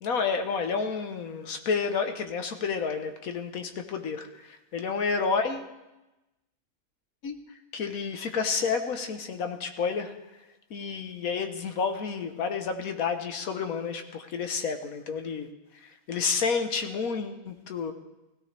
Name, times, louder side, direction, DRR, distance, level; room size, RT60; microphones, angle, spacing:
voice 1, 0.0-5.7 7.2-7.4 7.7-10.1 10.7-15.5 15.8-17.9, left 5 dB, 70° left, 7 dB, 1.5 m, -30 dB
16.5 x 16.5 x 3.4 m, 1.0 s
omnidirectional pair, 1.6 m